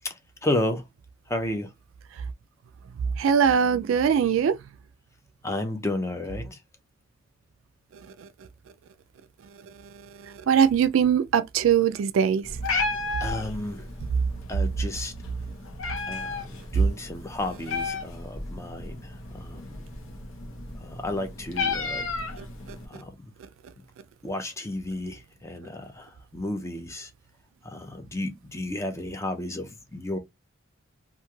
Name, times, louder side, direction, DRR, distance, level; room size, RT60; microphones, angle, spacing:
voice 1, 0.0-0.8 1.3-1.7 5.4-6.6 13.2-13.9 14.5-15.1 16.1-19.7 20.8-22.1 22.9-23.1 24.2-27.1 27.6-30.2, left 1 dB, 15° left, 0.5 m, -32 dB
voice 2, 3.2-4.6 7.9-8.5 9.5-12.6 14.0-14.2 22.4-22.8, right 7 dB, 70° right, 0.3 m, -23 dB
Meow, 12.4-22.8, left 3 dB, 70° left, 0.8 m, -33 dB
3.0 x 2.4 x 2.3 m
head